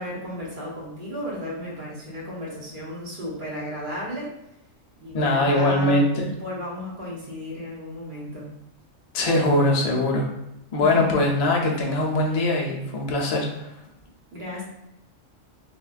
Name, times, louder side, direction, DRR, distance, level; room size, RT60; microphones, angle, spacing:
voice 1, 0.0-4.4 5.0-6.1 6.4-8.5 10.8-11.2 14.3-14.6, left 1 dB, 45° right, -6 dB, 1.1 m, -34 dB
voice 2, 5.1-6.2 9.1-10.3 10.7-13.7, left 1 dB, 60° left, 0 dB, 0.4 m, -22 dB
3.4 x 2.2 x 2.4 m, 0.85 s
omnidirectional pair, 1.3 m